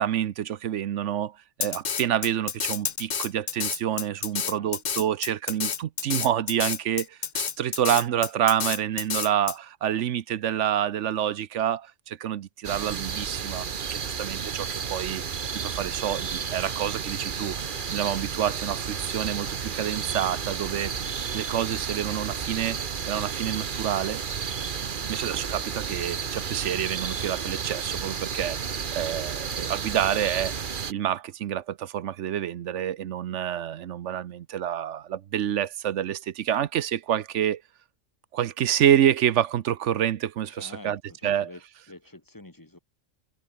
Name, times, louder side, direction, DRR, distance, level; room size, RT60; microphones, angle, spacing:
voice 1, 0.0-15.2 15.5-17.6 17.9-20.9 21.3-24.2 25.1-30.5 30.9-37.6 38.3-41.5, right 10 dB, 70° right, 1.0 m, -28 dB
Drum kit, 1.6-9.5, left 7 dB, 40° left, 0.8 m, -29 dB
voice 2, 4.3-4.7 24.8-25.1 40.5-41.6 41.9-42.8, left 2 dB, 15° left, 1.7 m, -47 dB
sound 1, 12.6-30.9, right 6 dB, 45° right, 1.1 m, -32 dB
omnidirectional pair, 1.3 m